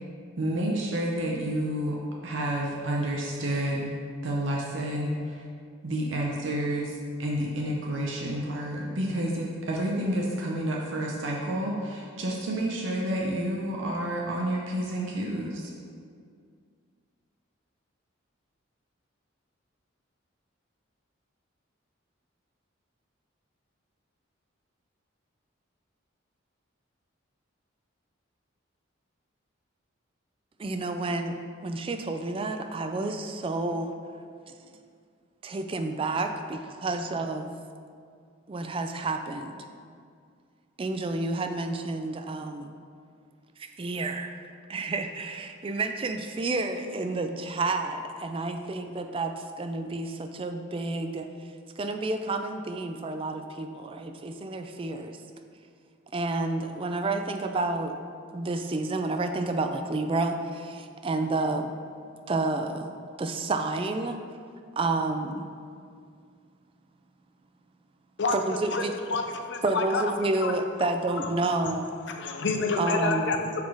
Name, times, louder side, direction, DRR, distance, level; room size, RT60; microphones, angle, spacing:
voice 1, 0.4-2.0 2.2-3.9 4.2-5.4 5.8-15.7, right 1 dB, 65° right, -2 dB, 0.7 m, -29 dB
voice 2, 30.6-33.9 34.5-34.6 35.4-37.6 38.5-39.6 40.8-42.7 43.6-44.3 44.7-51.5 51.8-55.2 56.1-57.9 58.3-61.7 62.3-62.9 63.2-64.2 64.8-65.5 68.3-68.9 69.6-71.9 72.8-73.3, right 2 dB, 25° right, 6 dB, 0.3 m, -30 dB
voice 3, 68.2-68.8 69.1-70.0 70.4-70.5 71.1-71.3 72.1-73.6, left 3 dB, 60° left, 4 dB, 0.6 m, -28 dB
7.2 x 4.0 x 4.7 m, 2.2 s
head